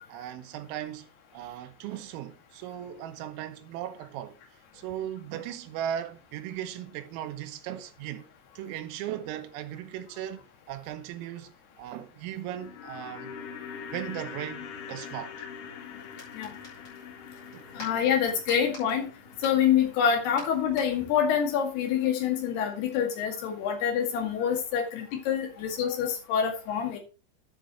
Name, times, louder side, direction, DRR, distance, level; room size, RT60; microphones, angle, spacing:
voice 1, 0.1-1.1 1.3-4.4 4.7-8.3 8.6-11.5 11.8-13.3 13.9-15.5 17.5-17.6, right 11 dB, 90° right, 3.7 m, -37 dB
sound 1, 12.3-22.6 22.8-22.9, left 7 dB, 80° left, 4.3 m, -44 dB
sound 2, 16.0-21.4, left 1 dB, 20° left, 5.3 m, -49 dB
voice 2, 17.8-19.1 19.4-27.0, left 8 dB, 60° left, 3.7 m, -26 dB
10.5 x 7.8 x 3.1 m
omnidirectional pair, 5.9 m